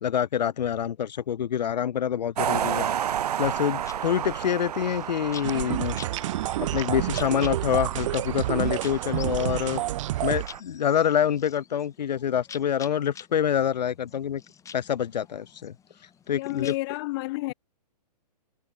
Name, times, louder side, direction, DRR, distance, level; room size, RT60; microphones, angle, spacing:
voice 1, 0.0-2.9 3.4-6.0 6.6-9.8 10.2-14.4 14.7-15.7 16.3-16.7, left 9 dB, 90° left, 0.5 m, -26 dB
sound 1, 2.4-10.6, right 10 dB, 65° right, 1.3 m, -32 dB
sound 2, 3.7-16.8, left 7 dB, 15° left, 7.7 m, -49 dB
sound 3, 5.4-10.5, right 15 dB, 50° right, 1.1 m, -29 dB
voice 2, 16.3-17.5, left 22 dB, 35° left, 0.7 m, -30 dB
hypercardioid pair, 135°, 21 cm